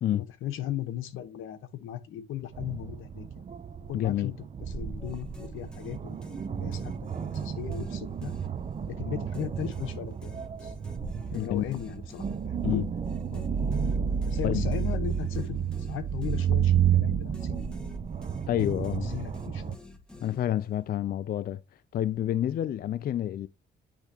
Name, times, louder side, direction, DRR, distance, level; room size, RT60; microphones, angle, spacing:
voice 1, 0.1-3.4 3.9-4.3 4.6-8.3 8.9-10.3 10.6-10.7 11.3-12.8 13.3-13.4 14.2-17.7 18.5-19.8, left 11 dB, 85° left, 1.0 m, -37 dB
sound 1, 2.5-19.7, right 8 dB, 35° right, 0.6 m, -31 dB
voice 2, 3.9-4.3 11.3-11.6 12.6-12.8 14.4-14.7 18.5-19.1 20.2-21.6 21.9-23.5, left 11 dB, 50° left, 0.4 m, -28 dB
sound 2, 5.0-9.0 9.3-17.0 17.3-20.8, left 2 dB, 5° left, 1.3 m, -50 dB
10.0 x 3.5 x 2.8 m
cardioid pair, 90°, 20 cm